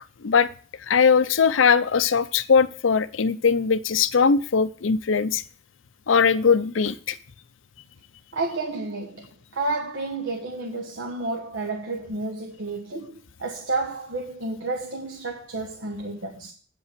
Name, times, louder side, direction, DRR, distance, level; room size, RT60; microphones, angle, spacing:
voice 1, 0.9-5.4 6.1-7.2, left 5 dB, 85° left, 0.6 m, -20 dB
voice 2, 8.3-16.5, right 3 dB, 75° right, 1.1 m, -31 dB
8.7 x 5.4 x 6.6 m
head